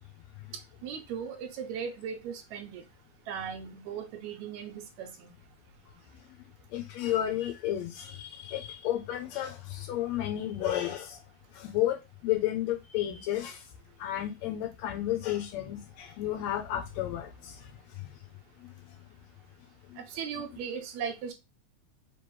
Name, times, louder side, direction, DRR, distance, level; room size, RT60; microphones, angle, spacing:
voice 1, 0.8-2.8 3.3-5.3 20.1-21.3, right 7 dB, 80° right, 1.9 m, -38 dB
voice 2, 6.7-11.2 11.5-13.6 14.0-17.6 18.6-18.7 19.9-20.0, left 12 dB, 80° left, 1.7 m, -32 dB
4.5 x 3.4 x 3.0 m
omnidirectional pair, 3.4 m